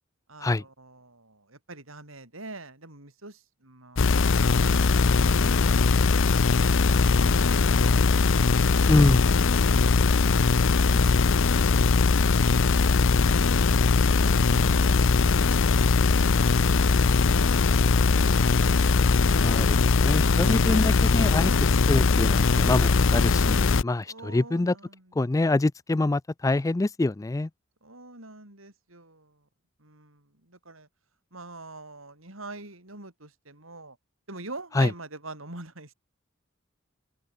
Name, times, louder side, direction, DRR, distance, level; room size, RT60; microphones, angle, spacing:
voice 1, 0.3-6.4 6.7-6.8 7.1-8.0 9.1-11.9 12.4-15.4 15.6-17.0 17.3-18.4 20.6-21.0 24.0-25.3 27.8-29.5 29.8-30.9 31.3-34.0 34.3-35.9, right 2 dB, 80° right, 7.5 m, -45 dB
sound 1, 4.0-23.8, left 4 dB, 70° left, 0.7 m, -21 dB
voice 2, 8.9-9.2 19.4-21.5 21.9-24.7 25.2-27.5 34.8-34.9, left 2 dB, 15° left, 0.4 m, -25 dB
open air
head